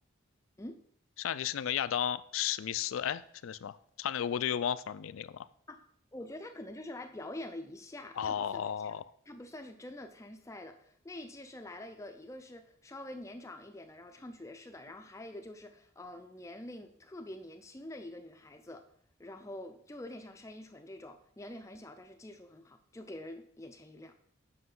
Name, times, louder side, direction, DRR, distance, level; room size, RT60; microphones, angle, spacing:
voice 1, 1.2-5.5 8.2-9.1, left 9 dB, 75° left, 15 dB, 0.4 m, -34 dB
voice 2, 6.1-8.9 9.3-18.8 19.2-24.1, left 1 dB, 15° left, 6 dB, 0.4 m, -46 dB
7.9 x 5.8 x 3.8 m, 0.63 s
head